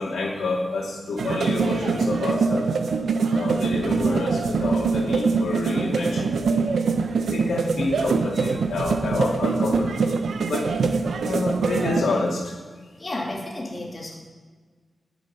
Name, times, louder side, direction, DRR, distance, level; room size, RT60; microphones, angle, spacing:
voice 1, 0.0-2.7 3.3-6.4 7.3-10.7 11.2-12.6, left 3 dB, 85° left, -2 dB, 2.7 m, -28 dB
sound 1, 1.2-12.0, right 4 dB, 90° right, 1.0 m, -24 dB
voice 2, 13.0-14.2, left 1 dB, 20° left, -3 dB, 2.8 m, -32 dB
20.0 x 7.1 x 5.7 m, 1.4 s
wide cardioid pair, 150°, 0 cm